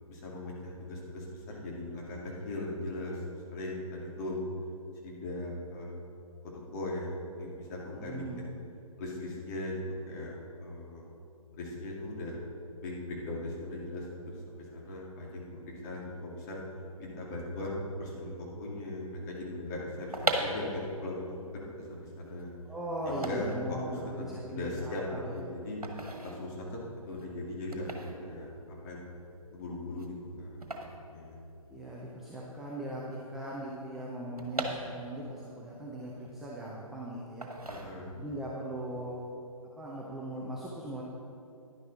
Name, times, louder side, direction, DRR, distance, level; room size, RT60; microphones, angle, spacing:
voice 1, 0.0-4.4 5.0-6.0 6.4-8.5 9.0-11.0 11.6-12.4 12.8-14.4 14.7-16.6 17.0-22.5 23.1-25.0 25.3-25.8 26.2-26.8 27.1-28.5 28.8-29.0 29.5-30.6 31.1-31.4 37.7-38.4, left 1 dB, 30° left, -4 dB, 2.2 m, -39 dB
voice 2, 7.9-8.4 22.6-25.3 31.7-37.5 38.2-39.2 39.8-41.0, right 1 dB, ahead, -6 dB, 0.4 m, -39 dB
sound 1, 19.9-32.0 32.3-32.4 32.5-35.4 35.8-36.9 37.4-38.4 38.8-39.0, right 2 dB, 80° right, 1.6 m, -39 dB
11.0 x 10.5 x 4.0 m, 2.7 s
figure-of-eight pair, 135°, 19 cm